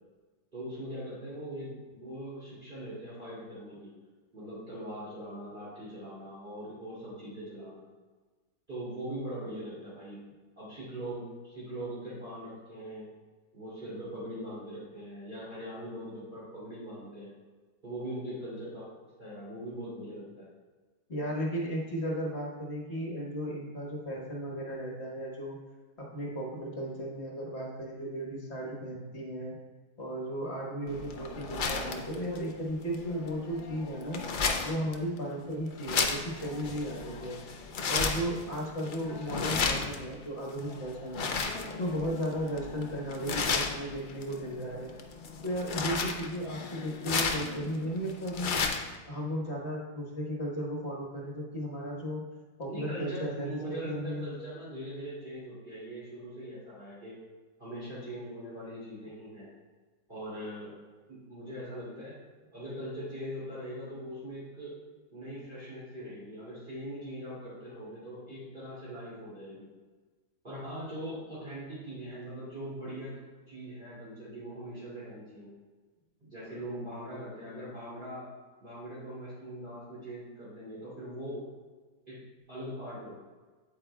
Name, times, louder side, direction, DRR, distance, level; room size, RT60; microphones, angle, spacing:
voice 1, 0.5-3.9 4.3-7.8 8.7-10.2 10.6-13.1 13.5-17.3 17.8-18.9 19.2-20.5 52.7-57.2 57.6-59.5 60.1-60.7 61.1-62.1 62.5-64.8 65.1-69.7 70.4-73.1 73.5-75.5 76.2-78.3 78.6-81.5 82.1-82.2 82.5-83.1, right 1 dB, 30° right, -10 dB, 2.7 m, -41 dB
voice 2, 21.1-25.6 26.0-29.5 30.0-34.2 34.6-37.5 37.9-41.3 41.8-44.9 45.4-48.8 49.1-52.2 52.6-54.3, equal, 45° left, -2 dB, 1.5 m, -35 dB
sound 1, 30.9-49.0, left 4 dB, 70° left, 0.4 m, -34 dB
8.7 x 8.4 x 2.3 m, 1.3 s
omnidirectional pair, 1.7 m